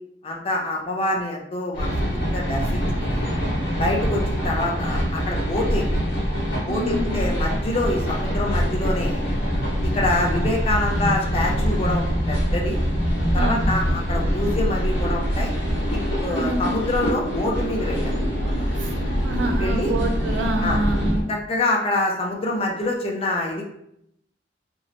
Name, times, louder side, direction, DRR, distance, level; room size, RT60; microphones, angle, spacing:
voice 1, 0.2-3.2 3.8-5.8 6.6-9.2 9.8-12.8 13.3-15.5 15.9-18.1 18.4-18.6 19.6-19.9 20.6-20.8 21.3-23.7, left 2 dB, 30° left, -1 dB, 0.4 m, -26 dB
sound 1, 1.7-21.2, equal, 85° left, 0.9 m, -24 dB
voice 2, 6.6-7.2 13.3-13.6 16.2-16.6 18.8-18.9 19.2-21.2, right 1 dB, 80° right, 4 dB, 0.4 m, -27 dB
2.7 x 2.1 x 2.6 m, 0.77 s
head